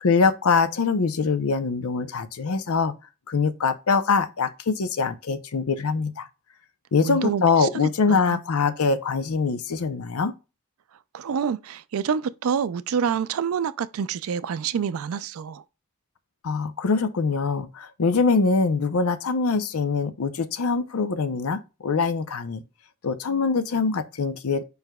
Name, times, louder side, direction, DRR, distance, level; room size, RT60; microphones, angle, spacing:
voice 1, 0.0-2.9 3.3-6.3 6.9-10.3 16.4-22.6 23.0-24.6, left 4 dB, 85° left, 0.6 m, -23 dB
voice 2, 7.0-7.7 8.1-8.4 11.1-15.6, right 7 dB, 75° right, 0.4 m, -27 dB
5.0 x 4.7 x 2.2 m
head